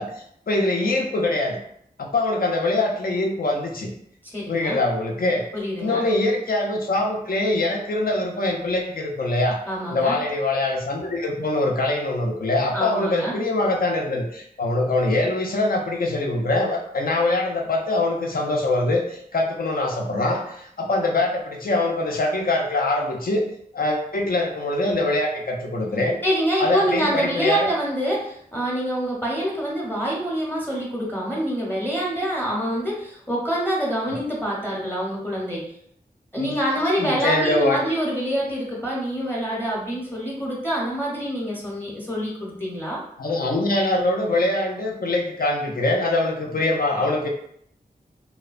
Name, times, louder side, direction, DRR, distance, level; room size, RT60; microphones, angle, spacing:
voice 1, 0.0-1.6 2.0-3.9 4.5-5.4 5.8-9.6 9.9-23.4 23.7-26.2 26.6-27.7 36.4-36.5 37.0-37.8 43.2-47.3, left 2 dB, 65° left, 1 dB, 0.5 m, -23 dB
voice 2, 4.2-4.8 5.5-6.0 9.7-10.2 12.7-13.3 26.2-35.7 36.3-43.0, equal, 10° left, -4 dB, 0.7 m, -26 dB
2.7 x 2.1 x 2.4 m, 0.69 s
wide cardioid pair, 60°, 16 cm